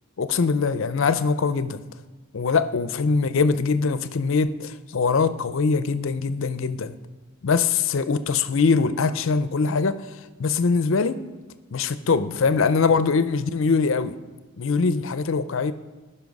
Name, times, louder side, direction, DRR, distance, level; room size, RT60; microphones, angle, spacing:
voice 1, 0.2-1.8 2.3-7.0 7.4-10.0 10.4-11.2 11.7-14.1 14.6-15.7, left 4 dB, 60° left, 13 dB, 0.5 m, -22 dB
14.0 x 5.7 x 5.3 m, 1.3 s
head